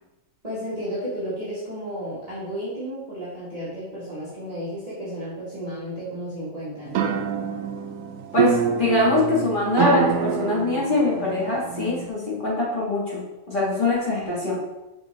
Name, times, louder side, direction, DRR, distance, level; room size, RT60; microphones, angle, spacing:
voice 1, 0.4-7.1, equal, 25° right, -11 dB, 1.8 m, -33 dB
sound 1, 6.9-12.1, right 7 dB, 85° right, 1.0 m, -26 dB
voice 2, 8.3-14.6, left 3 dB, 40° left, -6 dB, 1.8 m, -23 dB
5.7 x 4.9 x 3.4 m, 0.99 s
omnidirectional pair, 1.4 m